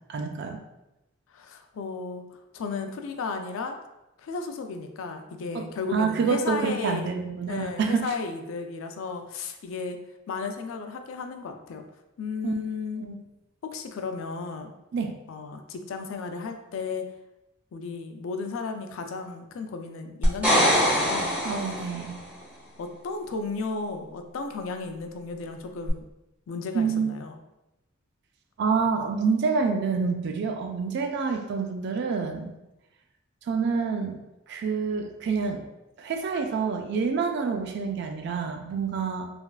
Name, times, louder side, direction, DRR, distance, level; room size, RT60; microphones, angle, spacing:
voice 1, 0.1-0.6 5.5-8.1 12.4-12.5 13.0-13.2 14.9-15.2 21.4-22.2 26.7-27.2 28.6-32.5 33.5-34.2 34.5-35.7 36.0-39.3, right 5 dB, 55° right, 5 dB, 0.3 m, -27 dB
voice 2, 1.3-2.2 2.5-3.7 4.2-7.1 7.5-10.0 10.3-11.8 12.2-13.1 13.6-14.7 15.3-17.0 17.7-21.4 22.8-26.0 26.5-27.3, left 4 dB, 75° left, 6 dB, 0.3 m, -34 dB
sound 1, 20.2-22.2 25.9-26.0, equal, 10° right, 1.1 m, -23 dB
3.3 x 2.3 x 2.3 m, 0.95 s
head